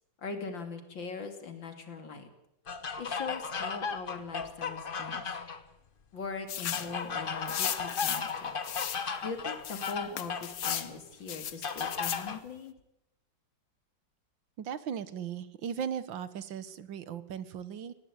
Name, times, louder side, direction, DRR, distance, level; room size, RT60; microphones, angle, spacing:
voice 1, 0.2-2.3 3.0-5.4 6.1-8.5 9.2-12.7, left 4 dB, 85° left, 7 dB, 3.4 m, -41 dB
sound 1, 2.7-5.6 6.7-10.9 11.6-12.4, left 5 dB, 35° left, 1.0 m, -36 dB
sound 2, 6.5-6.9 7.5-8.3 8.6-9.0 9.6-10.9 11.3-12.2, left 10 dB, 55° left, 1.3 m, -35 dB
voice 2, 14.6-17.9, right 8 dB, 90° right, 15 dB, 1.9 m, -37 dB
19.5 x 17.0 x 8.6 m, 0.82 s
omnidirectional pair, 2.0 m